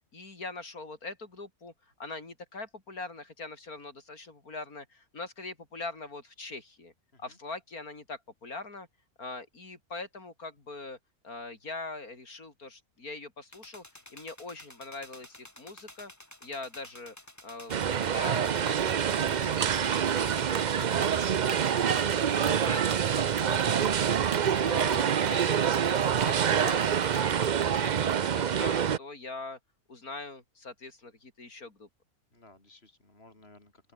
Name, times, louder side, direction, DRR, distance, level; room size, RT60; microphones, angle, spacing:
voice 1, 0.1-6.9 7.2-8.9 9.2-11.0 11.2-13.8 14.1-16.1 16.4-17.2 17.4-21.4 21.9-26.9 27.2-29.6 29.9-31.9, left 3 dB, 80° left, 4.7 m, -42 dB
sound 1, 13.5-27.2, left 1 dB, 10° left, 2.6 m, -52 dB
sound 2, 17.7-29.0, right 8 dB, 50° right, 0.5 m, -26 dB
sound 3, 18.6-28.2, right 9 dB, 65° right, 1.3 m, -42 dB
voice 2, 32.3-33.9, left 2 dB, 45° left, 5.2 m, -54 dB
open air
omnidirectional pair, 1.5 m